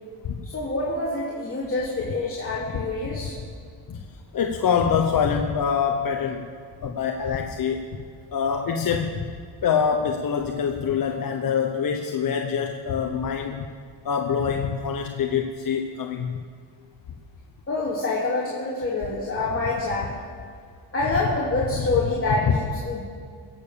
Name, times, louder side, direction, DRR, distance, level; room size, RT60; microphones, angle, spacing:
voice 1, 0.4-3.3 17.7-20.1 20.9-23.0, left 2 dB, 25° left, -6 dB, 2.8 m, -26 dB
voice 2, 4.3-6.4 6.8-7.8 8.3-9.3 9.6-13.7 14.0-16.4 22.5-22.6, left 7 dB, 45° left, 4 dB, 1.0 m, -25 dB
17.5 x 7.0 x 7.1 m, 2.2 s
cardioid pair, 100°, 48 cm